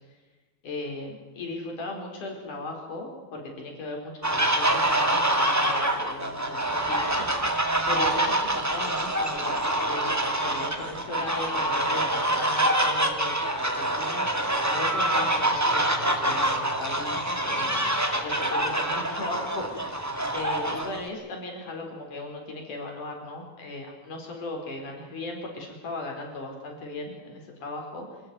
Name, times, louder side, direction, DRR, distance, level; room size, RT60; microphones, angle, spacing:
voice 1, 0.6-6.6 6.9-7.6 7.9-17.9 18.2-28.1, left 2 dB, 50° left, 1 dB, 5.6 m, -37 dB
sound 1, 4.2-21.1, right 1 dB, 25° right, 0.3 m, -26 dB
25.5 x 14.0 x 9.6 m, 1.3 s
omnidirectional pair, 4.5 m